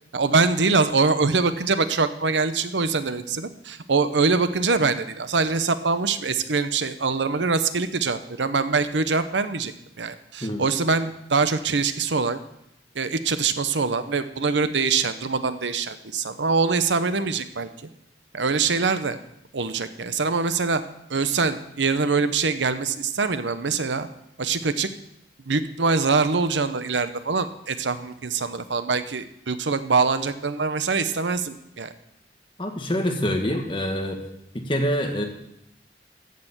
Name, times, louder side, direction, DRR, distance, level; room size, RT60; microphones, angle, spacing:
voice 1, 0.1-12.4 12.9-17.7 18.3-19.2 19.5-20.8 21.1-24.1 24.4-24.9 25.5-31.9, right 4 dB, 85° right, 11 dB, 0.9 m, -24 dB
voice 2, 32.6-34.2 34.5-35.2, equal, 30° left, 3 dB, 1.7 m, -25 dB
14.5 x 6.8 x 7.4 m, 0.79 s
head